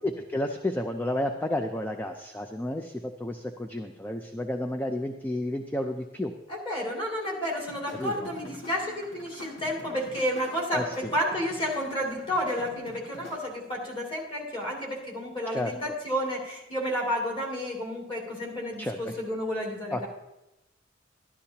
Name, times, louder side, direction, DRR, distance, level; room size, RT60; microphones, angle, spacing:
voice 1, 0.0-6.3 7.9-8.3 10.7-11.1 15.5-15.7 18.8-19.1 19.9-20.0, left 1 dB, 10° left, 5 dB, 0.4 m, -31 dB
voice 2, 6.5-20.1, equal, 25° left, -3 dB, 2.6 m, -31 dB
sound 1, 7.6-13.4, left 1 dB, 90° left, 2.1 m, -46 dB
12.5 x 12.0 x 2.8 m, 0.95 s
head